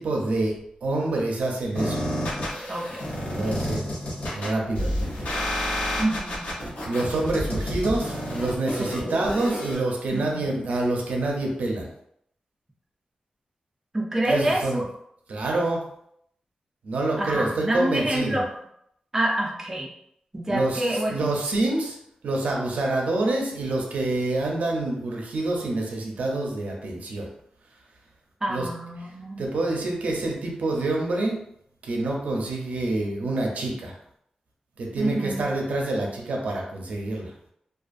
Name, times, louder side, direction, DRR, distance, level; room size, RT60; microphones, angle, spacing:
voice 1, 0.0-2.1 3.2-3.9 4.3-5.1 6.9-11.9 14.2-14.8 15.3-15.8 16.8-18.4 20.5-22.0 22.2-27.3 28.5-28.7 29.0-29.1 29.4-31.4 31.8-34.0 34.8-37.3, right 2 dB, 80° right, -1 dB, 0.5 m, -27 dB
sound 1, 1.8-9.8, equal, 85° left, 0.8 m, -30 dB
voice 2, 3.4-3.7 6.0-6.5 8.8-9.2 10.1-10.5 13.9-14.8 17.2-18.4 19.1-19.9 20.3-21.3 28.4-29.5 35.0-35.5, right 1 dB, 15° right, -2 dB, 0.5 m, -27 dB
2.5 x 2.4 x 2.4 m, 0.73 s
wide cardioid pair, 160°, 3 cm